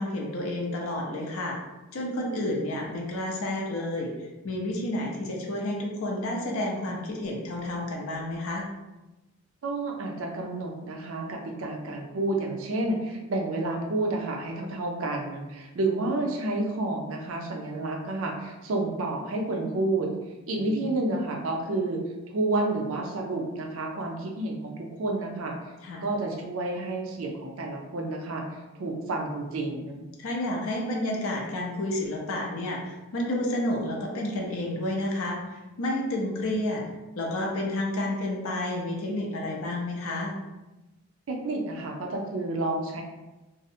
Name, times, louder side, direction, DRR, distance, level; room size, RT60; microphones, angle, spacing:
voice 1, 0.0-1.6 1.9-8.7 20.6-20.8 25.8-26.0 30.2-36.8 37.1-40.3, left 1 dB, 70° left, -1 dB, 0.5 m, -30 dB
voice 2, 9.6-20.1 20.5-22.0 22.3-25.5 26.0-28.4 28.7-30.0 41.3-43.0, right 2 dB, 65° right, 1 dB, 0.4 m, -30 dB
2.6 x 2.0 x 2.6 m, 1.1 s
head